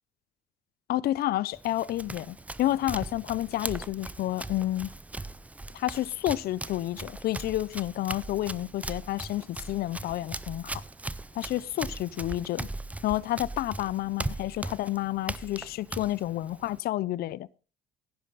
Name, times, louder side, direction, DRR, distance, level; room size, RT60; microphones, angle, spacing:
voice 1, 0.9-4.9 5.7-10.8 11.3-12.7 13.0-17.6, left 15 dB, 65° left, 0.6 m, -30 dB
Run, 1.5-16.8, right 2 dB, 10° right, 0.5 m, -39 dB
16.5 x 10.5 x 4.1 m
cardioid pair, 110°, 17 cm